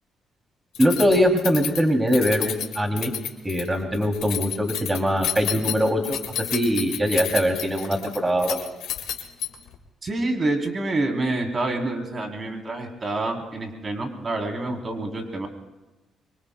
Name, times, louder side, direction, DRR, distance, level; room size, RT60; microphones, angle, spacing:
Keys jangling, 0.7-9.8, left 10 dB, 90° left, 1.8 m, -31 dB
voice 1, 0.8-3.1 3.4-6.2 6.5-8.7, equal, 15° right, 3 dB, 2.7 m, -22 dB
voice 2, 10.0-15.5, right 2 dB, 35° right, 2 dB, 3.3 m, -27 dB
25.0 x 24.5 x 2.2 m, 1.1 s
cardioid pair, 90°, 0 cm